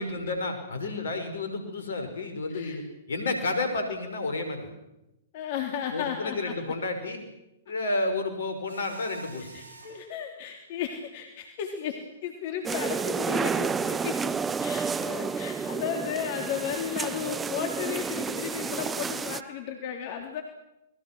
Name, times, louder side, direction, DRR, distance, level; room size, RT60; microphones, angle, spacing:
voice 1, 0.0-2.8 3.1-4.7 5.9-7.2 7.7-9.5, left 2 dB, 75° left, 6 dB, 5.9 m, -31 dB
voice 2, 5.3-6.6 9.4-14.2 14.6-20.4, left 8 dB, 50° left, 4 dB, 3.4 m, -34 dB
Mechanisms, 8.7-10.1, right 2 dB, 75° right, 7.9 m, -47 dB
sound 1, 12.6-19.4, right 5 dB, 15° right, 1.0 m, -30 dB
30.0 x 21.5 x 6.3 m, 0.93 s
hypercardioid pair, 115°, 0 cm